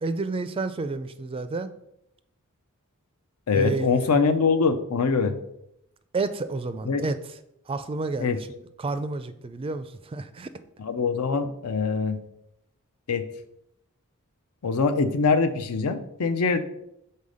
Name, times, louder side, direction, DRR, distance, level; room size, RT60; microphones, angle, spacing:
voice 1, 0.0-1.7 3.5-4.1 6.1-7.2 7.7-8.5 8.8-10.5, right 3 dB, 25° right, 12 dB, 0.3 m, -30 dB
voice 2, 3.5-5.4 6.8-7.0 8.2-8.4 10.8-12.2 13.1-13.3 14.6-16.6, left 4 dB, 85° left, 9 dB, 0.6 m, -23 dB
5.6 x 4.1 x 4.9 m, 0.81 s
head